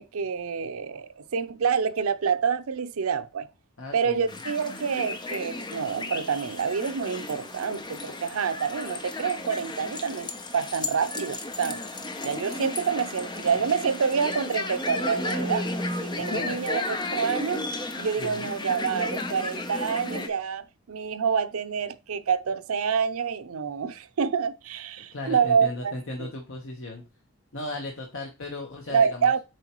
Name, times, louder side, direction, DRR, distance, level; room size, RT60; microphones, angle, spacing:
voice 1, 0.0-3.5 3.9-11.8 12.2-15.7 16.0-16.8 17.1-17.6 18.0-26.3 28.9-29.4, right 6 dB, 85° right, 0.6 m, -27 dB
voice 2, 3.8-4.4 16.3-16.5 18.2-18.4 25.1-27.0 27.5-29.3, left 2 dB, 65° left, 1.1 m, -36 dB
sound 1, 4.3-20.3, left 2 dB, 20° left, 0.7 m, -34 dB
7.7 x 4.5 x 3.0 m
head